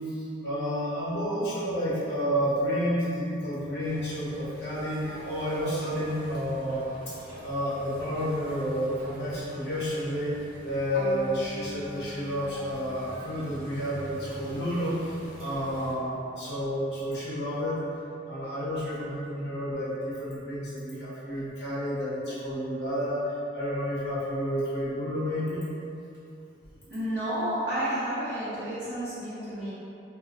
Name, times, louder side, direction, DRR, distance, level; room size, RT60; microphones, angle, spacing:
voice 1, 0.0-10.4 10.6-17.8 18.3-25.6, equal, 75° left, -10 dB, 1.1 m, -30 dB
sound 1, 3.8-15.9, equal, 30° right, 0.7 m, -48 dB
Bowed string instrument, 10.9-14.0, right 1 dB, 25° left, 1.5 m, -40 dB
voice 2, 26.8-29.7, right 1 dB, 65° right, -15 dB, 0.8 m, -31 dB
2.9 x 2.7 x 2.5 m, 2.8 s
head